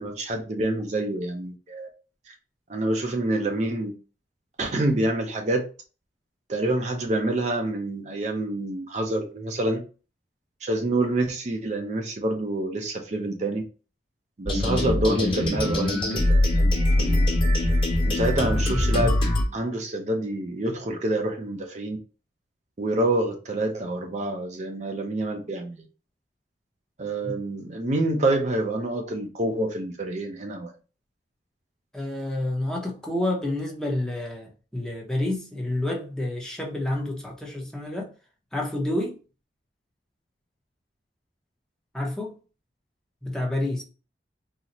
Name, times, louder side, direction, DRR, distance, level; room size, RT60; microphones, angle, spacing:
voice 1, 0.0-1.9 2.3-2.4 2.7-3.9 4.6-5.7 6.5-9.8 10.6-13.6 14.4-17.3 18.1-19.2 19.5-22.0 22.8-25.8 27.0-30.7, right 1 dB, 40° right, 0.5 m, -27 dB
sound 1, 14.5-19.4, left 1 dB, 30° left, 1.0 m, -22 dB
voice 2, 31.9-38.1 38.5-39.2 41.9-42.4 43.2-43.8, left 1 dB, 5° left, 0.6 m, -29 dB
3.9 x 2.0 x 2.9 m
head